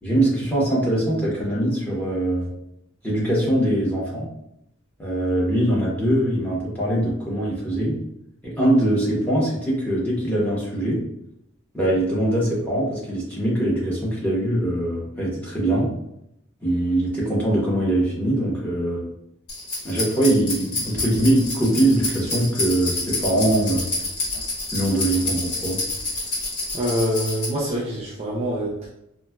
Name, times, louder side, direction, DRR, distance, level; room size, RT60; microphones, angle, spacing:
voice 1, 0.0-2.5 3.0-4.3 5.0-8.0 8.4-11.0 11.7-15.9 16.6-19.0 19.8-23.9 24.7-25.8, right 1 dB, 5° left, -6 dB, 0.8 m, -22 dB
sound 1, 19.5-27.5, left 2 dB, 80° left, 1.1 m, -28 dB
voice 2, 26.7-28.9, equal, 30° right, -5 dB, 0.4 m, -25 dB
4.0 x 2.1 x 2.2 m, 0.80 s
head